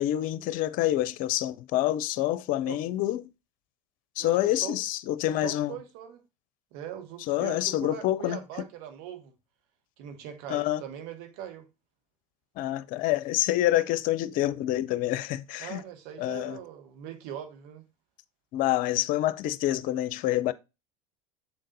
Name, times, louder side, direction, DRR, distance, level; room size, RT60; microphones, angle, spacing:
voice 1, 0.0-3.3 4.2-5.7 7.3-8.4 10.5-10.8 12.6-15.8 16.2-16.6 18.5-20.5, left 14 dB, 55° left, 0.6 m, -27 dB
voice 2, 4.2-4.8 5.4-6.2 6.7-9.3 10.0-11.7 15.6-17.8, right 10 dB, 60° right, 1.4 m, -41 dB
7.2 x 3.9 x 3.9 m
hypercardioid pair, 80°, 17 cm